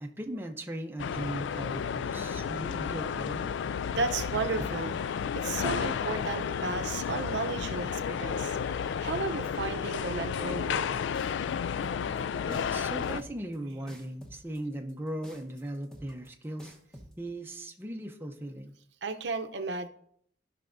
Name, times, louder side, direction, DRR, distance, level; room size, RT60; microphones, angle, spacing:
voice 1, 0.0-3.5 12.5-16.7 17.2-18.7, right 1 dB, 10° right, 3 dB, 0.6 m, -38 dB
sound 1, 1.0-13.2, left 7 dB, 85° left, 0.3 m, -32 dB
voice 2, 3.9-11.0 19.0-19.9, right 4 dB, 80° right, 7 dB, 0.7 m, -34 dB
sound 2, 11.1-17.1, equal, 5° left, 1.0 m, -49 dB
15.0 x 5.8 x 2.6 m, 0.68 s
head